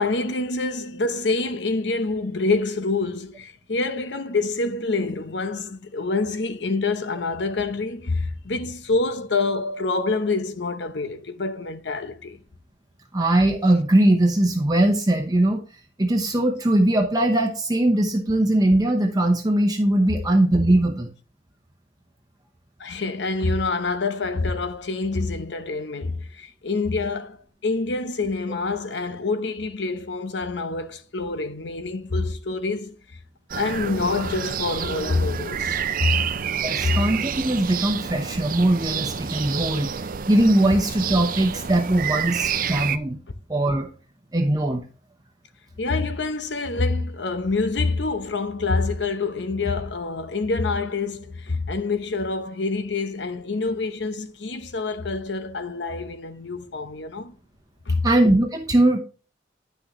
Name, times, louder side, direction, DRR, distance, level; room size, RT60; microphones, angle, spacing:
voice 1, 0.0-12.4 20.1-20.2 22.8-27.4 27.6-33.0 33.5-36.2 36.8-37.0 45.8-57.3 57.9-58.1, left 3 dB, 75° left, 0.8 m, -26 dB
voice 2, 13.1-15.6 16.0-21.1 36.6-43.2 43.5-43.9 44.3-44.8 58.0-59.0, right 1 dB, 20° right, 0.9 m, -20 dB
sound 1, 33.5-43.0, right 7 dB, 50° right, 0.5 m, -28 dB
10.0 x 6.2 x 3.1 m
head